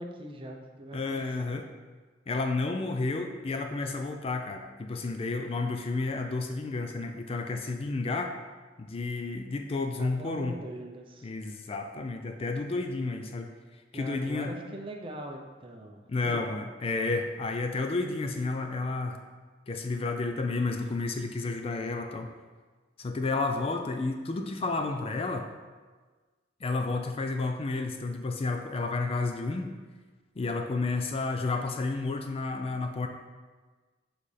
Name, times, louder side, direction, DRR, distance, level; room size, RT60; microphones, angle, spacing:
voice 1, 0.0-1.2 1.5-1.6 9.9-11.3 13.9-16.5, right 1 dB, 30° right, 2 dB, 0.6 m, -41 dB
voice 2, 0.9-1.7 2.3-8.3 8.8-10.6 11.2-13.5 13.9-14.5 16.1-19.2 19.7-22.3 23.0-25.5 26.6-29.7 30.4-33.1, left 3 dB, 30° left, 5 dB, 0.3 m, -31 dB
7.4 x 4.0 x 3.3 m, 1.4 s
head